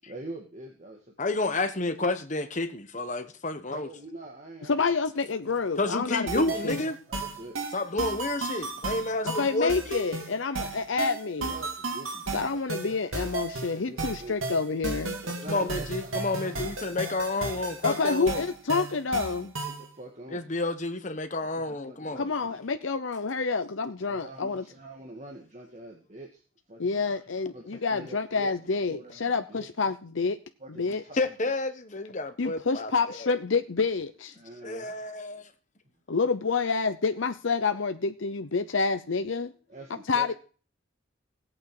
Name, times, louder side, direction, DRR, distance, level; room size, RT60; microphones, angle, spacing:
voice 1, 0.0-1.5 3.7-4.8 5.4-6.0 6.3-7.6 11.4-14.4 15.2-17.2 17.5-18.2 19.7-20.5 21.4-22.6 24.0-26.4 26.7-28.5 28.8-29.7 30.6-31.5 34.3-35.1 39.7-40.3, right 1 dB, 35° right, 1 dB, 1.8 m, -46 dB
voice 2, 1.2-3.9 5.8-6.9 7.7-9.7 15.5-18.4 20.3-22.2 31.2-32.9 33.2-33.3 34.6-35.5, left 2 dB, 35° left, 10 dB, 1.1 m, -30 dB
voice 3, 4.7-6.8 9.4-11.5 12.3-15.2 17.8-19.5 22.2-24.6 26.8-30.4 30.8-31.0 32.4-34.3 36.1-39.5 40.1-40.3, left 4 dB, 70° left, 9 dB, 0.7 m, -28 dB
sound 1, 6.3-19.9, right 3 dB, 90° right, 2.5 m, -34 dB
16.5 x 8.8 x 4.8 m, 0.38 s
head